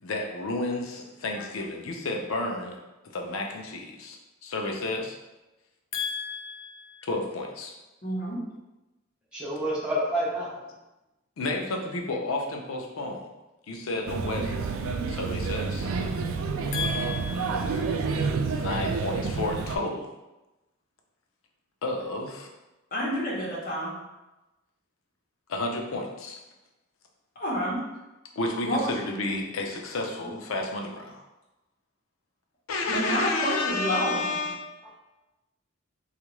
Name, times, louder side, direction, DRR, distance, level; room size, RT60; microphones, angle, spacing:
voice 1, 0.0-2.8 3.1-5.2 5.9-7.7 11.4-13.3 13.7-14.6 15.1-15.9 16.7-18.0 18.5-20.1 21.8-22.5 25.5-26.4 28.4-31.2 32.7-34.8, left 2 dB, 85° left, 2 dB, 0.5 m, -31 dB
voice 2, 8.0-8.4 22.9-23.9 27.4-27.8 28.6-28.9 32.9-34.3, equal, 45° left, -5 dB, 1.1 m, -28 dB
voice 3, 9.3-10.6, equal, 5° right, -7 dB, 0.7 m, -28 dB
Male speech man speaking / Child speech kid speaking / Chatter, 14.1-19.8, right 4 dB, 80° right, 0.3 m, -29 dB
3.6 x 2.4 x 3.0 m, 1.0 s
head